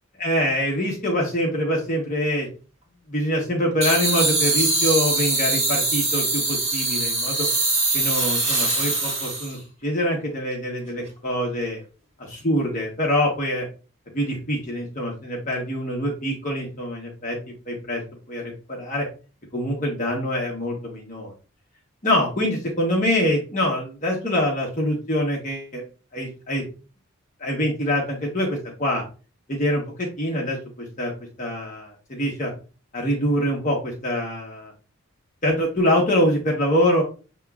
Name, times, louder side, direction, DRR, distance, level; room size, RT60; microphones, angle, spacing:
voice 1, 0.2-2.5 3.1-7.5 7.9-11.8 12.2-13.6 14.1-17.4 17.7-18.0 18.3-19.1 19.5-21.3 22.0-25.8 26.1-26.6 27.4-29.0 29.5-31.1 31.4-32.5 32.9-34.7 35.4-37.0, equal, 35° left, -1 dB, 1.1 m, -24 dB
sound 1, 3.8-9.6, right 2 dB, 30° right, 2.1 m, -23 dB
7.3 x 3.0 x 2.4 m, 0.35 s
head